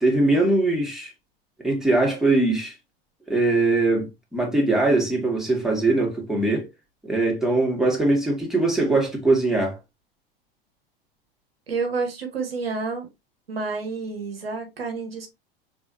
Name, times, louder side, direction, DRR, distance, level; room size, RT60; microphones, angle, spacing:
voice 1, 0.0-1.1 1.6-2.7 3.3-6.7 7.0-9.8, right 2 dB, ahead, 2.1 m, -21 dB
voice 2, 11.7-13.1 13.5-15.3, right 4 dB, 85° right, 1.3 m, -29 dB
4.8 x 3.6 x 2.7 m
hypercardioid pair, 90°, 29 cm